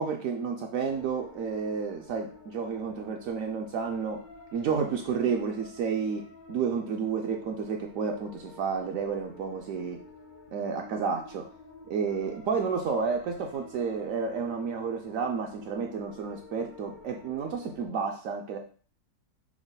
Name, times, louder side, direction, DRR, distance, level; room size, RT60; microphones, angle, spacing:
voice 1, 0.0-4.3 4.5-10.0 10.5-11.4 11.9-18.6, right 5 dB, 70° right, 2 dB, 0.9 m, -31 dB
sound 1, 0.9-17.9, left 2 dB, 65° left, 0.4 m, -50 dB
6.2 x 2.1 x 3.9 m, 0.41 s
omnidirectional pair, 1.6 m